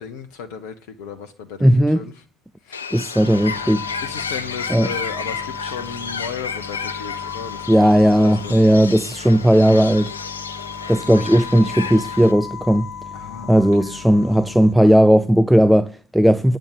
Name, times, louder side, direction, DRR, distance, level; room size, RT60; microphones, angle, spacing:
voice 1, 0.0-1.7 1.9-2.1 2.6-2.8 4.0-8.6 13.1-14.6, left 6 dB, 70° left, 0.9 m, -35 dB
voice 2, 1.6-2.0 2.9-3.8 4.7-4.9 7.7-10.1 10.9-12.9 13.5-16.6, equal, 5° right, 0.5 m, -15 dB
Bird, 2.7-12.3, left 5 dB, 85° left, 0.5 m, -32 dB
sound 1, 3.2-14.7, left 7 dB, 40° left, 1.5 m, -36 dB
8.7 x 6.5 x 8.2 m
figure-of-eight pair, 55°, 0 cm